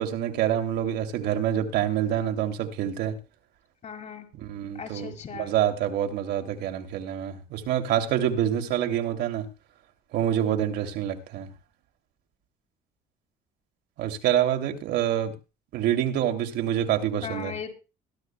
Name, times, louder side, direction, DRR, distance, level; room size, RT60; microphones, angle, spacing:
voice 1, 0.0-3.2 4.3-9.5 10.1-11.5 14.0-15.3 15.7-17.5, right 10 dB, 80° right, 2.7 m, -26 dB
voice 2, 3.8-4.3 4.7-5.5 17.2-17.7, left 6 dB, 45° left, 4.9 m, -37 dB
21.5 x 12.5 x 2.2 m
cardioid pair, 110°, 17 cm